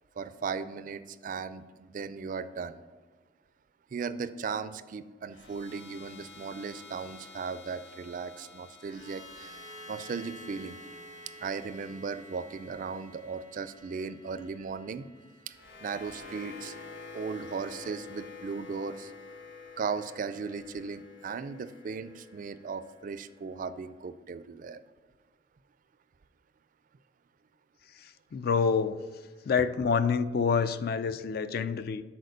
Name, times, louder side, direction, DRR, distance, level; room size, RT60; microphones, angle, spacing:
voice 1, 0.2-2.8 3.9-9.6 9.9-10.8 11.4-15.1 15.5-16.8 17.1-19.1 19.8-24.8, right 5 dB, 45° right, 14 dB, 0.3 m, -37 dB
sound 1, 5.3-23.5, left 3 dB, 90° left, 1.4 m, -49 dB
voice 2, 28.3-29.0 29.5-32.0, left 5 dB, 55° left, 13 dB, 0.3 m, -27 dB
6.6 x 4.3 x 6.6 m, 1.4 s
head